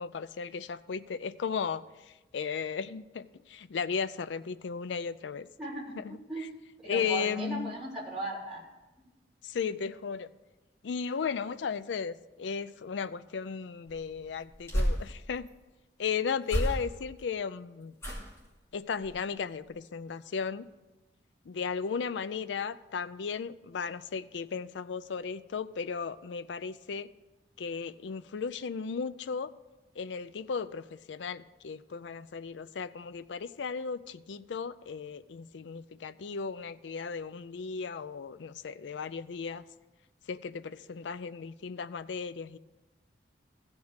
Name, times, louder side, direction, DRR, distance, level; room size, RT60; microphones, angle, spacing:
voice 1, 0.0-5.5 6.0-6.5 6.9-7.8 9.4-10.3 10.8-15.5 16.0-17.9 18.7-20.7 21.5-27.1 27.6-29.5 30.0-39.6 40.3-42.6, left 6 dB, 90° left, 14 dB, 0.4 m, -35 dB
voice 2, 5.6-6.4 6.8-8.6, right 1 dB, 5° right, -9 dB, 3.7 m, -37 dB
sound 1, 13.9-15.5 16.4-17.2 18.0-18.5 19.0-19.3 19.6-19.7, equal, 15° left, 2.6 m, -33 dB
15.0 x 5.3 x 6.4 m, 1.1 s
head